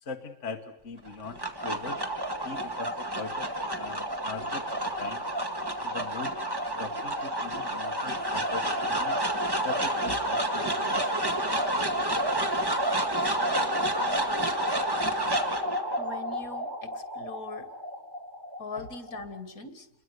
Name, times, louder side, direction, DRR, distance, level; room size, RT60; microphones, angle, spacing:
voice 1, 0.0-2.0 2.4-5.2 5.8-6.4 6.8-9.2 9.6-11.0 18.8-18.9, left 4 dB, 55° left, 3 dB, 1.8 m, -40 dB
sound 1, 1.1-19.4, right 1 dB, 15° right, 2.1 m, -30 dB
voice 2, 16.0-17.7 18.6-19.9, left 3 dB, 70° left, 10 dB, 2.6 m, -41 dB
28.5 x 22.5 x 8.1 m, 0.70 s
omnidirectional pair, 1.6 m